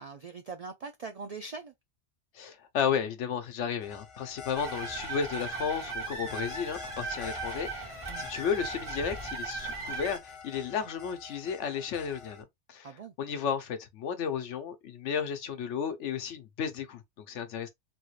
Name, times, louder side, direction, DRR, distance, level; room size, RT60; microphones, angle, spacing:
voice 1, 0.0-1.7 8.1-8.3 12.8-13.1, right 4 dB, 70° right, 0.3 m, -42 dB
voice 2, 2.3-12.9 13.2-17.7, left 7 dB, 80° left, 1.1 m, -33 dB
sound 1, 3.8-12.4, left 6 dB, 30° left, 0.8 m, -47 dB
sound 2, 4.5-10.2, right 3 dB, 25° right, 1.3 m, -38 dB
3.5 x 2.4 x 3.1 m
omnidirectional pair, 1.2 m